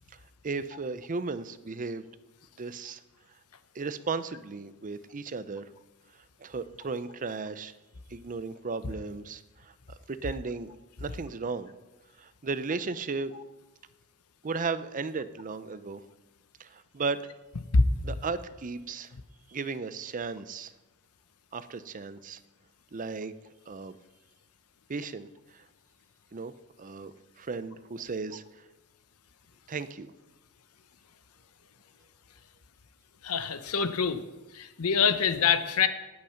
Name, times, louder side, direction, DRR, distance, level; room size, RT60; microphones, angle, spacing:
voice 1, 0.4-2.0 2.6-3.0 3.7-5.7 6.4-7.7 8.1-9.7 10.1-10.7 11.0-11.7 12.2-13.3 14.4-16.0 16.6-17.3 18.0-19.1 19.5-20.7 21.5-22.4 22.9-23.3 23.7-24.0 24.9-25.3 25.5-25.7 26.3-26.5 26.8-28.6 29.7-30.1, right 4 dB, 35° right, 13 dB, 0.6 m, -35 dB
voice 2, 33.2-34.2 34.5-35.9, left 5 dB, 85° left, 11 dB, 0.8 m, -25 dB
19.0 x 6.4 x 5.7 m, 1.1 s
head